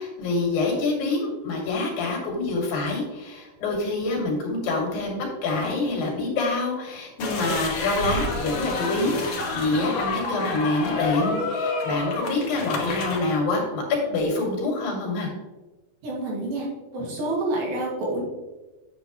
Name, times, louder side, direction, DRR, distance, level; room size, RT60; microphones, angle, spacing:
voice 1, 0.0-13.8 14.1-15.3, left 2 dB, 70° left, 0 dB, 3.6 m, -26 dB
sound 1, 7.2-13.2, left 3 dB, 85° left, 1.1 m, -29 dB
voice 2, 16.0-16.7 16.9-18.2, right 2 dB, 75° right, -3 dB, 3.8 m, -28 dB
8.7 x 7.7 x 3.0 m, 1.2 s
omnidirectional pair, 4.2 m